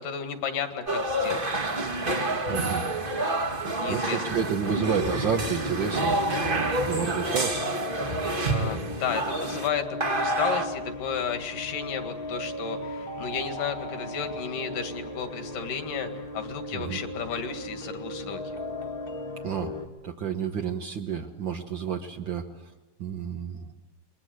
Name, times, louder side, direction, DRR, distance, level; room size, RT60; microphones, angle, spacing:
voice 1, 0.0-1.5 3.6-4.2 8.4-18.4, left 7 dB, 70° left, 7 dB, 3.5 m, -33 dB
sound 1, 0.9-9.7 10.0-10.6, right 2 dB, 30° right, 1.0 m, -28 dB
voice 2, 2.5-2.8 3.9-7.7 16.7-17.0 19.4-19.7 20.0-22.5 23.0-23.7, right 7 dB, 75° right, 4 dB, 1.1 m, -30 dB
sound 2, 4.9-19.9, left 1 dB, 35° left, 0.9 m, -37 dB
28.5 x 22.0 x 7.9 m, 1.1 s
omnidirectional pair, 3.9 m